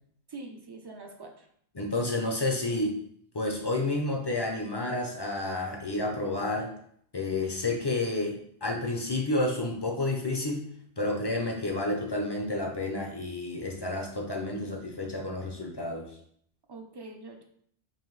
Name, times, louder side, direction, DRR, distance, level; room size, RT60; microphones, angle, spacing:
voice 1, 0.3-1.5 16.7-17.4, right 3 dB, 40° right, 2 dB, 0.3 m, -44 dB
voice 2, 1.8-3.0 3.3-6.7 7.1-16.1, left 2 dB, 35° left, 1 dB, 0.4 m, -30 dB
5.4 x 2.6 x 3.1 m, 0.65 s
omnidirectional pair, 1.1 m